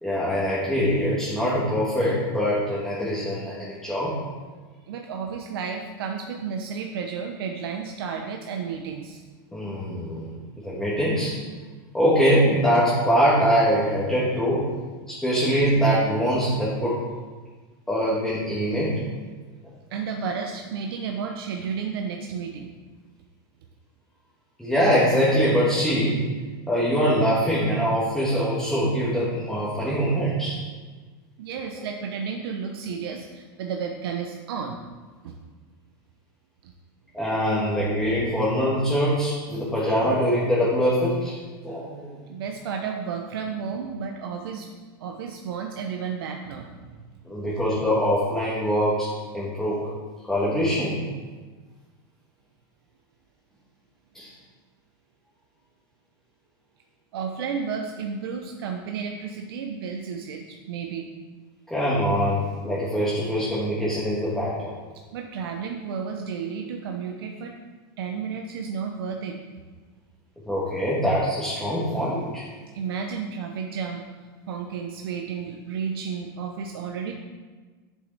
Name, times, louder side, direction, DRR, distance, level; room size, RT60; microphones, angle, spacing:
voice 1, 0.0-4.1 9.5-10.3 10.6-11.3 11.9-14.7 15.1-17.0 17.9-19.0 24.6-26.2 26.7-30.6 31.7-31.8 37.1-41.3 41.6-42.1 47.2-49.9 50.3-51.0 54.1-54.3 61.7-64.7 70.4-72.4, equal, 5° left, -9 dB, 1.6 m, -23 dB
voice 2, 4.9-9.2 19.9-22.7 31.4-34.8 35.2-35.3 36.6-36.7 42.3-44.7 45.0-47.0 57.1-61.1 65.1-67.6 68.0-69.4 72.7-74.1 74.5-77.1, right 6 dB, 80° right, 3 dB, 0.8 m, -32 dB
7.6 x 7.5 x 4.1 m, 1.4 s
supercardioid pair, 145°, 12 cm